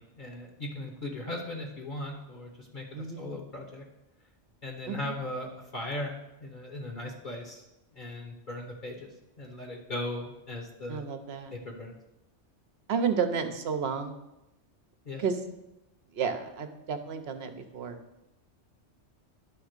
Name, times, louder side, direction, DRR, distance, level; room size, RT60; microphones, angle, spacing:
voice 1, 0.0-3.8 4.6-6.1 6.4-7.6 7.9-9.1 9.4-11.0 11.5-12.0 15.1-15.2, left 1 dB, 45° left, 1 dB, 1.0 m, -38 dB
voice 2, 2.9-3.3 4.9-5.2 10.9-11.5 12.9-14.2 15.2-15.5 16.1-18.0, right 6 dB, 60° right, 8 dB, 1.0 m, -31 dB
10.5 x 3.5 x 6.5 m, 0.94 s
omnidirectional pair, 1.2 m